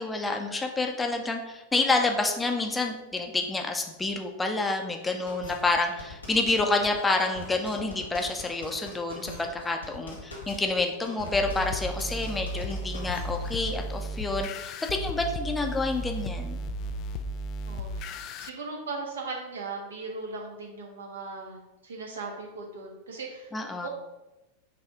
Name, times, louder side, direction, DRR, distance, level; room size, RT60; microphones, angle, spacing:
voice 1, 0.0-16.6 23.5-23.9, left 3 dB, 10° left, 3 dB, 0.7 m, -28 dB
sound 1, 5.3-13.8, left 2 dB, 75° left, 1.6 m, -42 dB
sound 2, 11.3-18.5, equal, 40° left, 0.3 m, -34 dB
voice 2, 17.7-18.1 18.4-23.5 23.8-23.9, right 3 dB, 65° right, 0 dB, 1.3 m, -38 dB
5.6 x 3.5 x 4.8 m, 1.0 s
figure-of-eight pair, 90°, 0 cm